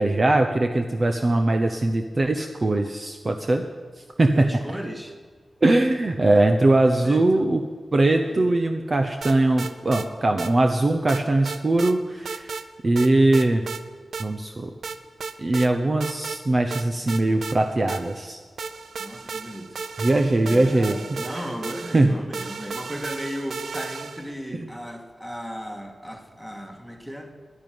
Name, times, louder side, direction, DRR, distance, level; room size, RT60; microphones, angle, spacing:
voice 1, 0.0-3.6 4.0-4.5 5.6-7.6 7.9-13.6 14.2-14.7 15.4-18.4 20.0-21.2 21.9-22.1, right 2 dB, 35° right, 5 dB, 0.8 m, -21 dB
voice 2, 4.3-5.2 6.8-7.5 8.3-8.5 19.0-19.8 20.4-27.3, equal, 5° right, 3 dB, 1.9 m, -36 dB
sound 1, 9.2-10.1 10.4-10.5 11.1-11.9 12.2-12.7 13.0-13.8 14.1-14.3 14.8-15.7 16.0-16.4 16.7-18.3 18.6-24.3, right 5 dB, 90° right, 0.7 m, -34 dB
11.5 x 10.5 x 9.4 m, 1.5 s
wide cardioid pair, 120°, 0 cm